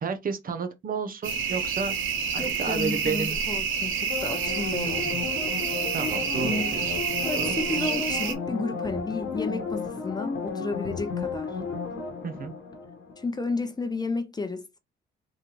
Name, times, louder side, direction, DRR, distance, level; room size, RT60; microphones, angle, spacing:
voice 1, 0.0-2.0 2.3-3.4 5.1-5.4 5.9-7.0 7.3-7.5 7.8-7.9 12.2-12.5, right 5 dB, 45° right, 0.8 m, -32 dB
sound 1, 1.2-8.3, right 6 dB, 80° right, 1.0 m, -29 dB
voice 2, 2.4-5.1 6.4-6.8 7.2-11.6 13.2-14.7, left 3 dB, 20° left, 0.6 m, -32 dB
sound 2, 4.1-13.5 13.8-13.9, left 5 dB, 75° left, 1.1 m, -33 dB
4.2 x 3.3 x 2.9 m
cardioid pair, 90°, 20 cm